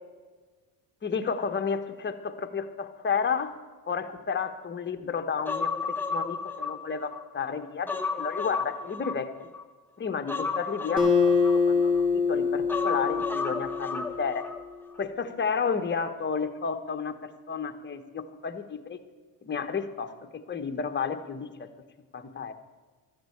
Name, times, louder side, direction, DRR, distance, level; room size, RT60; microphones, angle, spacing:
voice 1, 1.0-3.5 3.9-9.3 10.0-11.3 11.7-14.4 15.0-19.0 19.4-21.7 22.1-22.5, left 6 dB, 30° left, 7 dB, 1.2 m, -32 dB
Human voice, 5.5-7.2 7.6-9.6 10.3-12.0 12.7-14.6 14.9-15.0, left 4 dB, 5° left, 1.0 m, -33 dB
Acoustic guitar, 11.0-14.5, left 5 dB, 15° right, 2.7 m, -25 dB
13.0 x 7.9 x 8.0 m, 1.4 s
cardioid pair, 100°, 39 cm